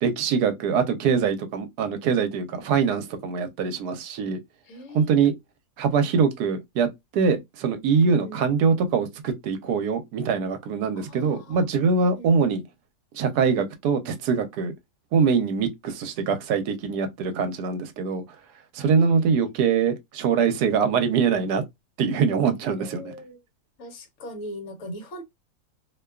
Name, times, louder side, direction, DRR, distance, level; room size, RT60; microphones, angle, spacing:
voice 1, 0.0-4.4 4.9-5.3 5.8-6.9 7.1-12.6 13.1-14.7 15.1-18.2 18.7-21.6 22.0-23.1, right 6 dB, 80° right, 1.2 m, -23 dB
voice 2, 4.6-5.3 7.9-8.4 10.9-11.6 11.9-12.4 18.8-19.4 22.8-23.4 23.8-25.2, equal, 60° left, 1.0 m, -40 dB
2.7 x 2.2 x 2.2 m
omnidirectional pair, 1.7 m